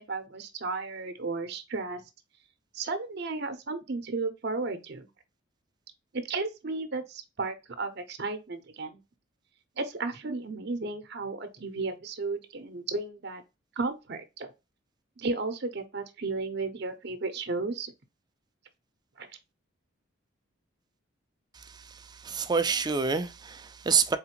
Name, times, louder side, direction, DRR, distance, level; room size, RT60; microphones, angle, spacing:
voice 1, 0.0-2.0 2.7-5.1 6.1-9.0 9.8-13.4 13.8-14.5 15.2-17.9 19.2-19.3, right 3 dB, 55° right, 0.7 m, -34 dB
voice 2, 21.6-24.2, right 5 dB, 20° right, 0.4 m, -28 dB
4.1 x 3.6 x 2.9 m
head